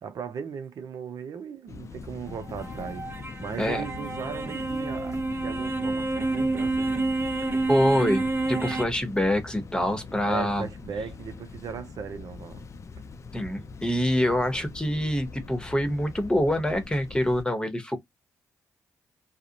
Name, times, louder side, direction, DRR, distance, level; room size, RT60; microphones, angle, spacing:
voice 1, 0.0-3.1 3.4-7.0 10.3-12.7, right 6 dB, 65° right, 0.5 m, -37 dB
sound 1, 1.7-17.4, left 4 dB, 45° left, 0.4 m, -42 dB
sound 2, 2.3-8.8, right 2 dB, 35° right, 0.7 m, -29 dB
voice 2, 7.7-10.7 13.3-18.0, equal, 15° left, 1.0 m, -25 dB
2.4 x 2.0 x 2.8 m
supercardioid pair, 50°, 7 cm